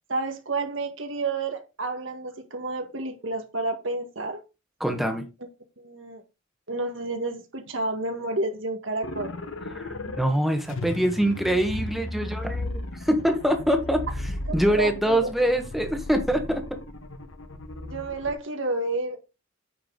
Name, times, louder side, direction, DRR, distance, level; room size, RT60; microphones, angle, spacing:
voice 1, 0.1-4.4 5.8-6.2 6.7-9.4 14.6-15.3 17.8-19.2, right 2 dB, 70° right, 1.7 m, -30 dB
voice 2, 4.8-5.2 9.7-14.0 14.5-16.6, equal, ahead, 1.5 m, -24 dB
sound 1, 9.0-10.2 10.7-18.3, left 2 dB, 75° left, 1.2 m, -35 dB
9.5 x 5.6 x 4.0 m
head